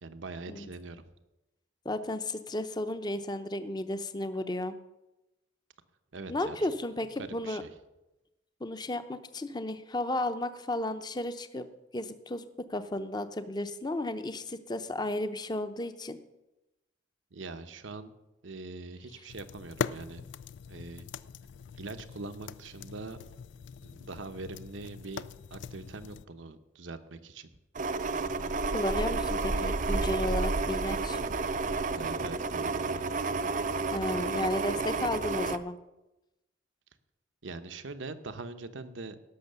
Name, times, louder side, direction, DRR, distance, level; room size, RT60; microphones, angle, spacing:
voice 1, 0.0-1.0 6.1-6.6 7.2-7.7 17.3-18.1 18.4-20.2 20.7-21.0 21.8-23.2 23.8-25.2 25.5-27.5 31.9-33.0 37.4-39.2, right 3 dB, 85° right, 9 dB, 0.9 m, -42 dB
voice 2, 1.8-4.8 6.3-7.6 8.6-11.7 11.9-16.2 28.7-31.2 33.9-35.8, left 1 dB, 20° left, 10 dB, 0.7 m, -33 dB
sound 1, 19.3-26.2, left 7 dB, 70° left, 0.4 m, -41 dB
sound 2, 27.8-35.6, right 3 dB, 40° right, 0.5 m, -31 dB
17.0 x 6.4 x 6.8 m, 0.98 s
head